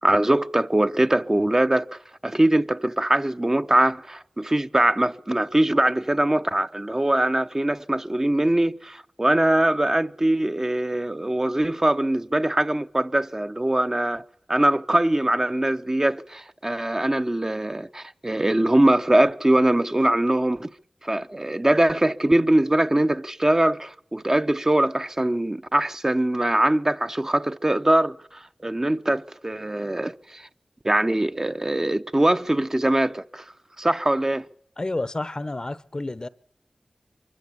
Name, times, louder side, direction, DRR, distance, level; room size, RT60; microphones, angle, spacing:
voice 1, 0.0-20.7 21.0-30.5 30.8-33.5 33.8-34.5, right 1 dB, 25° right, 0.8 m, -22 dB
voice 2, 34.8-36.3, left 2 dB, 35° left, 0.8 m, -30 dB
23.5 x 15.5 x 8.3 m
cardioid pair, 45°, 2 cm